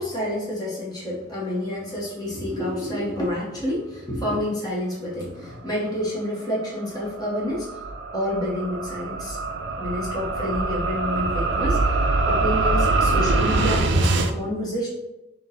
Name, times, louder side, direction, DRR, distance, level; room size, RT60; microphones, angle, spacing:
voice 1, 0.0-7.8 8.1-9.4 9.8-11.9 12.2-14.9, left 1 dB, 20° left, -6 dB, 1.0 m, -28 dB
sound 1, 6.5-14.3, right 3 dB, 70° right, 0.4 m, -23 dB
3.7 x 2.7 x 3.7 m, 1.0 s
head